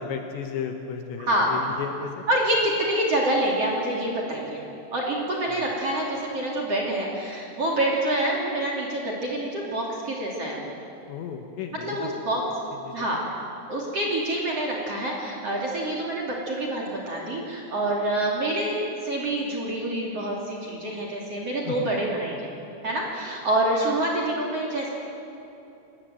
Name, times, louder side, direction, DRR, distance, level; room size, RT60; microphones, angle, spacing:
voice 1, 0.0-2.2 5.5-5.7 11.1-12.1 12.8-13.1 21.6-22.2, left 7 dB, 70° left, 4 dB, 3.1 m, -34 dB
voice 2, 1.2-1.5 2.3-4.6 4.9-10.7 11.8-12.4 12.9-13.2 13.7-22.5 22.8-24.9, right 1 dB, 35° right, -2 dB, 3.1 m, -27 dB
25.0 x 19.5 x 7.9 m, 2.8 s
omnidirectional pair, 5.9 m